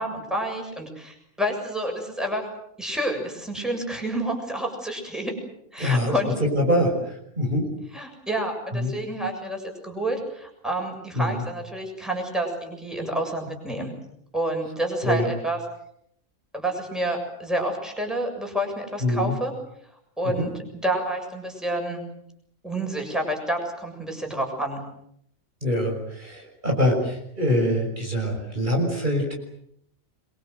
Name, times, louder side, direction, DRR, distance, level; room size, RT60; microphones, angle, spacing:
voice 1, 0.0-2.5 2.8-5.3 5.7-6.3 7.9-13.9 14.3-15.6 16.5-19.5 20.2-22.0 22.6-24.8, right 1 dB, ahead, 2 dB, 7.3 m, -29 dB
voice 2, 5.8-6.1 6.4-7.7 8.7-8.9 11.2-11.4 15.0-15.3 19.0-19.3 20.2-20.5 25.6-29.4, left 1 dB, 35° right, 1 dB, 6.3 m, -24 dB
27.5 x 23.5 x 8.0 m, 0.74 s
omnidirectional pair, 1.4 m